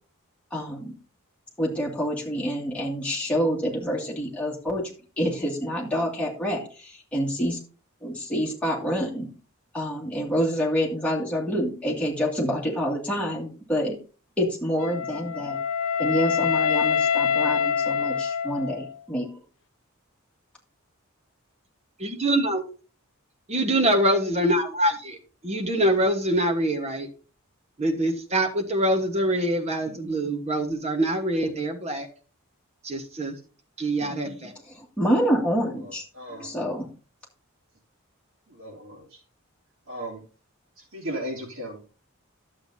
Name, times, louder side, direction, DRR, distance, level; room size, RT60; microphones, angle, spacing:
voice 1, 0.5-0.9 1.6-4.8 5.2-7.6 8.0-9.3 9.7-14.0 14.4-15.6 16.0-19.3 34.7-36.0 36.3-36.9, equal, 5° left, -5 dB, 2.3 m, -27 dB
Wind instrument woodwind instrument, 14.8-19.0, left 7 dB, 65° left, 0.5 m, -25 dB
voice 2, 22.0-22.6 23.5-25.2 25.4-27.1 27.8-32.1 32.8-33.3 33.8-34.5, right 1 dB, 30° right, 4 dB, 1.3 m, -24 dB
voice 3, 36.1-36.5 38.5-39.0 39.9-40.2 40.9-41.8, right 1 dB, 65° right, -3 dB, 3.1 m, -35 dB
11.5 x 7.9 x 2.8 m, 0.36 s
head